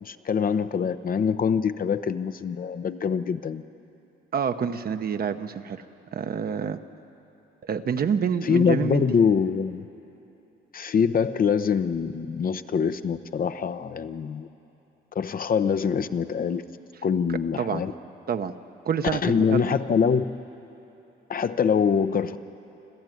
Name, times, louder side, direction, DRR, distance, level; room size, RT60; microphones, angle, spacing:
voice 1, 0.0-3.6 8.4-9.9 10.7-14.5 15.1-16.6 17.0-17.9 19.1-20.2 21.3-22.4, left 6 dB, 45° left, 10 dB, 0.8 m, -24 dB
voice 2, 4.3-5.8 6.1-6.8 7.6-9.1 17.6-17.8 18.3-18.5 18.8-19.7, right 7 dB, 50° right, 8 dB, 1.0 m, -27 dB
26.0 x 14.5 x 9.3 m, 3.0 s
cardioid pair, 90°, 20 cm